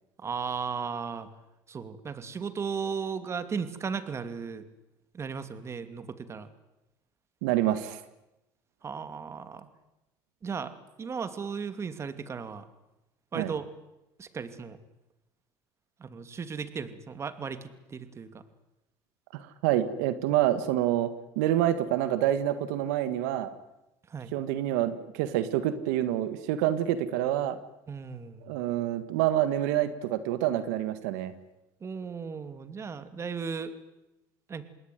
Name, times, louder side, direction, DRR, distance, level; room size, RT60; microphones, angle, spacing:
voice 1, 0.2-1.3 1.7-4.6 5.1-6.5 8.8-9.7 10.4-12.6 13.3-13.7 14.2-14.8 16.0-18.4 24.1-24.3 27.9-28.5 31.8-33.7 34.5-34.6, right 6 dB, 30° right, 11 dB, 2.6 m, -36 dB
voice 2, 7.4-8.0 13.3-13.5 19.3-21.1 21.4-23.5 24.3-27.6 28.4-31.3, right 12 dB, 90° right, 12 dB, 1.9 m, -27 dB
27.5 x 20.5 x 9.5 m, 0.93 s
supercardioid pair, 105°, 9 cm